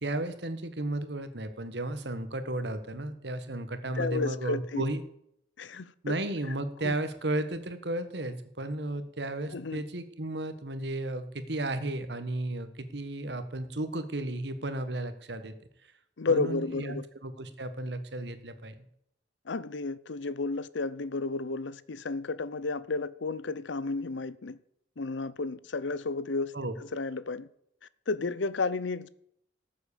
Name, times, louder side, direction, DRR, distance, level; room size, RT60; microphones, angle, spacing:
voice 1, 0.0-5.0 6.0-15.5 16.3-18.8 26.5-26.8, right 1 dB, 70° right, 1.5 m, -34 dB
voice 2, 4.0-4.8 5.6-6.2 6.8-6.9 9.5-9.8 16.2-17.0 19.5-24.6 25.0-26.5 26.9-27.5 28.1-29.1, left 3 dB, 90° left, 0.7 m, -32 dB
13.5 x 7.7 x 7.1 m
head